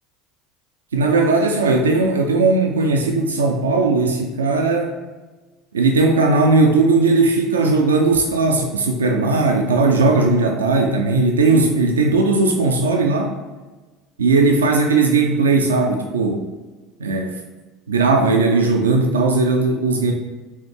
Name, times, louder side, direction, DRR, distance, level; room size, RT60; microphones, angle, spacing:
voice 1, 0.9-4.9 5.7-13.4 14.2-16.4 17.0-17.4 17.9-20.1, right 3 dB, 85° right, 2 dB, 0.4 m, -17 dB
4.2 x 3.1 x 3.5 m, 1.3 s
hypercardioid pair, 75°, 0 cm